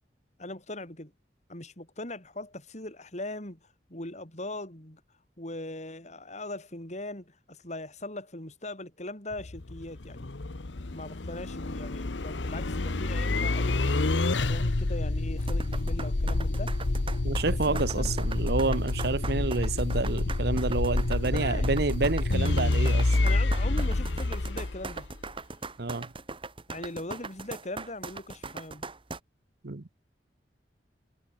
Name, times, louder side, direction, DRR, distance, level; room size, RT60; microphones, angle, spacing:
voice 1, 0.4-1.1 1.5-3.6 3.9-5.0 5.4-10.3 10.9-14.1 14.5-16.8 17.5-18.2 21.2-21.7 23.2-25.1 26.7-28.8, left 1 dB, 40° left, 5.0 m, -40 dB
sound 1, 9.3-25.3, left 2 dB, 90° left, 1.1 m, -28 dB
sound 2, 15.4-29.2, right 3 dB, 30° right, 2.3 m, -40 dB
voice 2, 17.2-23.2 23.6-23.7 25.8-26.1 29.6-29.9, right 3 dB, 60° right, 0.9 m, -29 dB
head